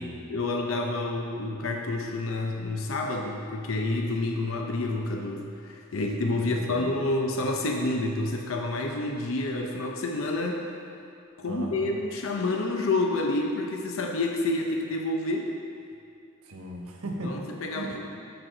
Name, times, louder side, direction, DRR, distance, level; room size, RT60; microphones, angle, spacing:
voice 1, 0.3-10.6 11.4-15.5 17.2-17.9, left 2 dB, 65° left, 2 dB, 0.7 m, -28 dB
voice 2, 6.4-6.9 11.5-11.9 16.4-17.4 17.7-18.1, right 1 dB, 80° right, 0 dB, 1.3 m, -37 dB
13.0 x 6.1 x 3.9 m, 2.5 s
head